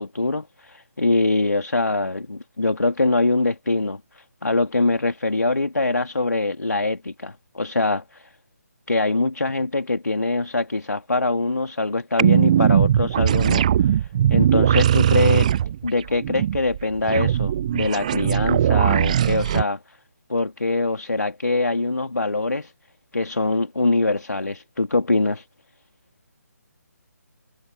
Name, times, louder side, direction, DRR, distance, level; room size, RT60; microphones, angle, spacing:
voice 1, 0.0-8.3 8.9-13.7 14.3-15.5 15.8-20.0 20.3-22.7 23.1-25.5, left 2 dB, 80° left, 2.4 m, -23 dB
sound 1, 12.2-19.6, right 10 dB, 25° right, 0.4 m, -19 dB
figure-of-eight pair, 145°, 9 cm